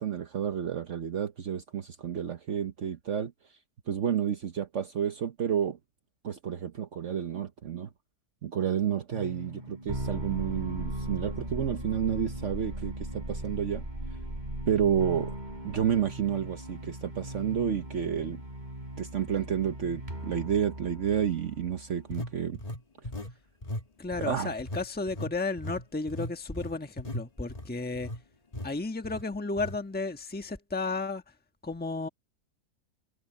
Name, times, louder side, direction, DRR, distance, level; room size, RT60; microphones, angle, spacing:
voice 1, 0.0-3.3 3.9-5.8 6.2-7.9 8.4-13.8 14.7-15.3 15.6-18.4 19.0-22.6 24.2-24.5, right 8 dB, 55° right, 1.2 m, -30 dB
sound 1, 9.1-22.4, right 1 dB, 25° right, 6.0 m, -38 dB
sound 2, 17.6-17.8 18.4-18.5 22.1-23.4 23.6-23.9 24.1-28.2 28.5-28.7 29.0-29.2 29.6-29.8, left 1 dB, 25° left, 1.6 m, -38 dB
voice 2, 24.0-28.1 28.6-31.2 31.6-32.1, left 3 dB, 5° left, 1.2 m, -33 dB
omnidirectional pair, 1.7 m